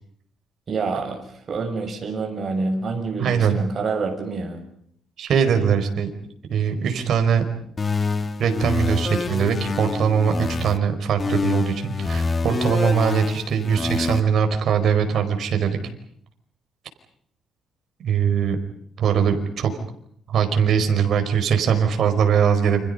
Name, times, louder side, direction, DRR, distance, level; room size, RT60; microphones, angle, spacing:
voice 1, 0.7-1.2 1.5-4.6, right 4 dB, 40° right, 4 dB, 6.6 m, -27 dB
voice 2, 3.2-3.6 5.2-6.1 6.5-7.4 8.4-15.8 18.0-18.6 19.0-19.7 20.3-22.9, right 7 dB, 60° right, 6 dB, 4.9 m, -21 dB
sound 1, 7.8-10.8 11.2-14.2, left 4 dB, 30° left, 1.7 m, -26 dB
30.0 x 27.0 x 5.5 m, 0.66 s
cardioid pair, 125°, 0 cm